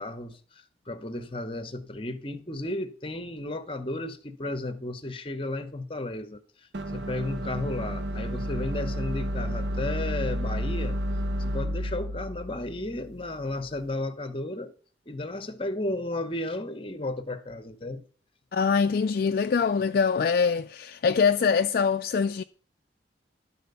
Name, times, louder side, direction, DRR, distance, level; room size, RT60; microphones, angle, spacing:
voice 1, 0.0-6.4 6.9-11.0 11.4-14.7 15.1-18.0, left 2 dB, 30° left, 0.9 m, -33 dB
sound 1, 6.7-13.8, equal, 80° right, 0.8 m, -31 dB
voice 2, 18.5-22.4, left 5 dB, 55° left, 0.3 m, -24 dB
12.0 x 4.2 x 6.8 m
head